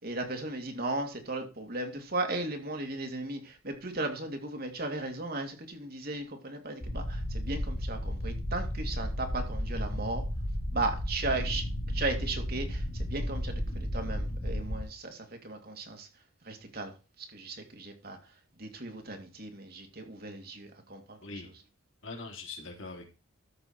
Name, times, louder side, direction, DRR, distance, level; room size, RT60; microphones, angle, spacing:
voice 1, 0.0-10.2 10.7-16.1 16.4-21.6, right 2 dB, 45° right, 2.4 m, -36 dB
sound 1, 6.8-14.8, equal, 20° left, 3.4 m, -33 dB
voice 2, 21.2-21.5 22.0-23.0, left 3 dB, 65° left, 3.3 m, -42 dB
13.5 x 5.7 x 4.4 m
head